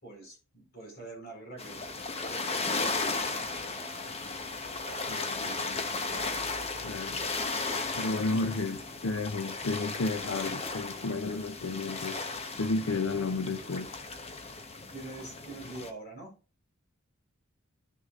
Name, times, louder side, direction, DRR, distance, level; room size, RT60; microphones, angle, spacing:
voice 1, 0.0-4.1 4.7-5.7 6.7-7.0 8.3-8.7 14.9-16.3, right 2 dB, 50° left, 4.6 m, -46 dB
sound 1, 1.6-15.9, left 3 dB, 30° left, 1.0 m, -35 dB
voice 2, 5.1-5.9 6.8-7.2 7.9-12.2 12.6-13.9, left 3 dB, 85° left, 0.6 m, -32 dB
12.5 x 6.5 x 2.5 m
head